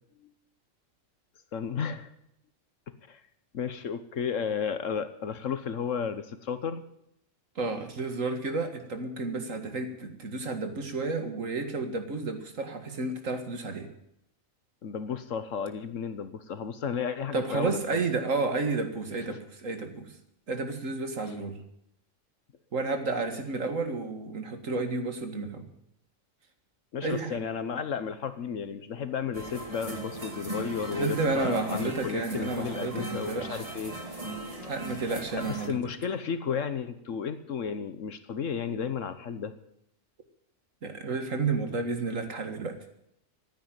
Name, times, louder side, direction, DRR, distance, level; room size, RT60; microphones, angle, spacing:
voice 1, 1.5-2.1 3.1-3.2 3.5-6.8 14.8-18.0 19.3-19.4 23.3-23.4 26.9-33.9 35.3-39.5, left 7 dB, 75° left, 11 dB, 1.3 m, -33 dB
voice 2, 7.6-13.9 17.3-20.1 20.5-21.6 22.7-25.7 27.0-27.4 30.9-33.6 34.7-35.8 40.8-42.8, right 3 dB, 75° right, 7 dB, 2.3 m, -31 dB
sound 1, 29.3-35.7, right 2 dB, 25° right, 2.3 m, -38 dB
15.0 x 9.5 x 9.1 m, 0.77 s
omnidirectional pair, 1.4 m